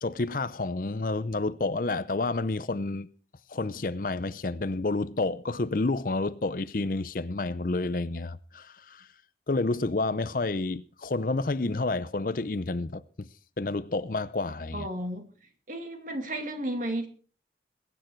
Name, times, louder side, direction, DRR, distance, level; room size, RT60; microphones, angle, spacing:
voice 1, 0.0-3.1 3.5-9.1 9.5-13.3 13.6-14.9, left 3 dB, 50° left, 0.6 m, -29 dB
voice 2, 14.7-15.3 15.7-17.1, right 1 dB, 45° right, 2.4 m, -33 dB
21.5 x 9.1 x 4.6 m
head